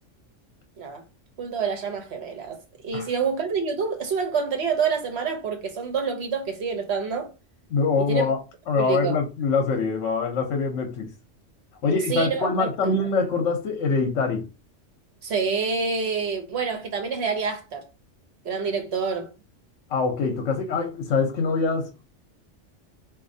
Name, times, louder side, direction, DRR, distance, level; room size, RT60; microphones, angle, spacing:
voice 1, 1.4-7.3 8.0-8.3 8.8-9.2 11.9-12.9 15.2-17.9 18.4-19.3, right 5 dB, 65° right, 1.0 m, -27 dB
voice 2, 7.7-8.4 8.7-11.1 11.8-14.5 19.9-22.0, left 4 dB, 75° left, 1.0 m, -24 dB
4.1 x 2.6 x 2.6 m
omnidirectional pair, 1.3 m